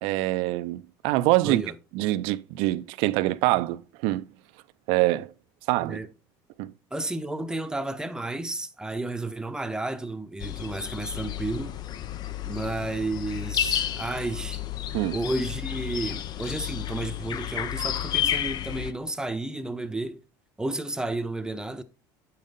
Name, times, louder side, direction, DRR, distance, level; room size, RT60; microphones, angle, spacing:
voice 1, 0.0-1.6 1.9-4.3 4.9-5.3 5.7-6.0 6.6-6.7 14.9-15.2, right 18 dB, 75° right, 0.5 m, -25 dB
voice 2, 1.4-1.7 5.8-6.1 6.9-11.8 12.4-14.6 15.1-20.2 20.6-21.8, right 2 dB, 5° right, 0.8 m, -32 dB
sound 1, 10.4-18.9, left 11 dB, 45° left, 0.6 m, -31 dB
8.4 x 5.3 x 4.0 m
supercardioid pair, 110°, 9 cm